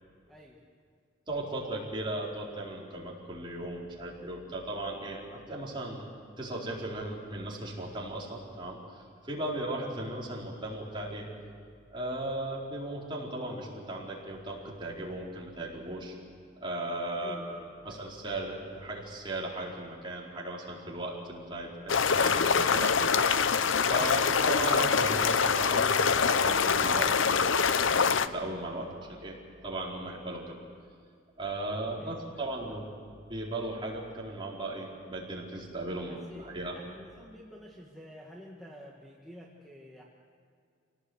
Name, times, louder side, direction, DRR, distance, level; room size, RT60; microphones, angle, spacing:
voice 1, 0.3-0.6 17.2-18.0 24.0-24.1 32.0-32.8 36.0-40.0, equal, ahead, -2 dB, 1.7 m, -50 dB
voice 2, 1.3-6.0 6.4-11.3 11.9-16.1 16.6-17.6 17.8-22.9 23.2-23.5 23.9-27.4 27.8-29.4 29.6-30.6 31.4-32.9 33.3-36.8, right 1 dB, 25° right, -4 dB, 4.5 m, -37 dB
sound 1, 21.9-28.3, left 6 dB, 80° left, 0.7 m, -25 dB
26.5 x 18.0 x 8.1 m, 2.3 s
head